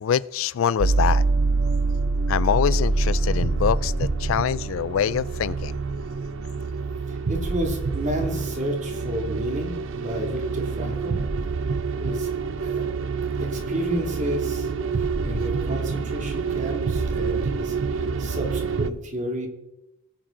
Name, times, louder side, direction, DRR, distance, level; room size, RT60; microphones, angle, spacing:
voice 1, 0.0-1.2 2.3-5.8, left 8 dB, 70° left, 20 dB, 0.4 m, -24 dB
sound 1, 0.8-18.9, right 4 dB, 70° right, 0.7 m, -26 dB
voice 2, 7.3-11.2 12.0-12.3 12.6-12.8 13.4-14.7 15.2-17.7 18.2-19.5, equal, 40° right, 2 dB, 2.5 m, -31 dB
19.0 x 8.8 x 3.8 m, 0.91 s
head